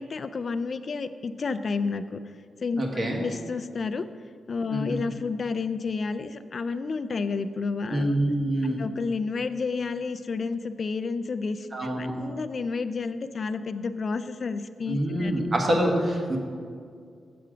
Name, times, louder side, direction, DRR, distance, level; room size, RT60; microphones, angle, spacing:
voice 1, 0.0-2.2 2.6-2.8 3.2-4.1 4.5-8.1 8.6-11.7 12.0-15.3, left 4 dB, 45° left, 10 dB, 0.3 m, -30 dB
voice 2, 2.8-3.2 4.7-5.0 7.9-8.8 11.7-12.1 14.9-16.4, right 1 dB, 35° right, 0 dB, 1.3 m, -26 dB
7.7 x 6.7 x 5.0 m, 2.2 s
wide cardioid pair, 145°, 0 cm